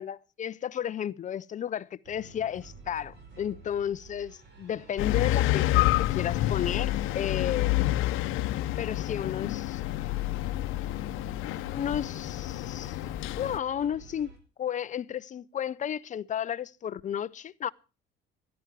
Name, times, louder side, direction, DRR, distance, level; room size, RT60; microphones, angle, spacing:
voice 1, 0.0-7.9 8.8-9.8 11.7-13.0 13.4-17.7, left 9 dB, 40° left, 0.6 m, -33 dB
sound 1, 2.0-14.4, right 3 dB, 55° right, 5.1 m, -50 dB
sound 2, 5.0-13.6, left 16 dB, 85° left, 0.8 m, -28 dB
17.0 x 12.5 x 4.7 m
cardioid pair, 125°, 20 cm